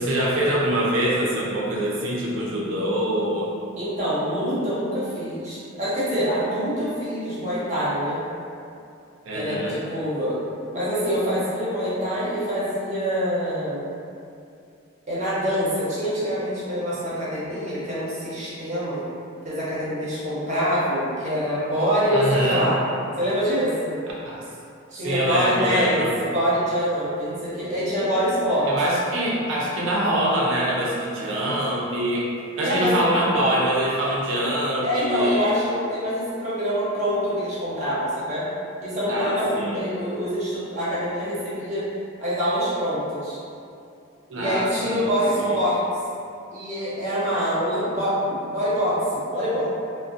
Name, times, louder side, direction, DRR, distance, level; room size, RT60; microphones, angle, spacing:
voice 1, 0.0-3.5 9.2-9.8 22.1-22.7 24.2-24.4 25.0-26.1 28.7-32.3 32.6-35.5 39.1-39.8 44.3-45.1 45.4-45.6, right 1 dB, 70° right, -4 dB, 0.4 m, -24 dB
voice 2, 3.8-8.2 9.3-10.4 10.7-13.8 15.1-19.0 19.4-22.8 23.2-24.0 24.9-28.7 32.6-33.0 34.8-38.5 38.8-39.5 39.7-41.8 42.2-43.4 44.3-45.8 46.5-49.7, equal, 35° right, -10 dB, 0.7 m, -25 dB
2.5 x 2.1 x 2.4 m, 2.5 s
head